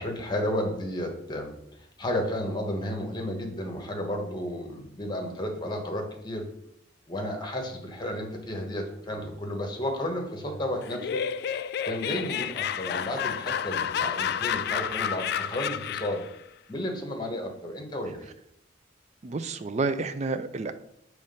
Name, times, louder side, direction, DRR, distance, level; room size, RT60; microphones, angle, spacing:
voice 1, 0.0-6.5 7.1-11.2 11.8-16.2 16.7-18.3, left 1 dB, 25° left, 3 dB, 1.1 m, -32 dB
Laughter, 10.8-16.3, left 8 dB, 55° left, 0.3 m, -30 dB
voice 2, 19.2-20.7, right 3 dB, 35° right, 10 dB, 0.4 m, -29 dB
7.2 x 3.2 x 5.3 m, 0.75 s
head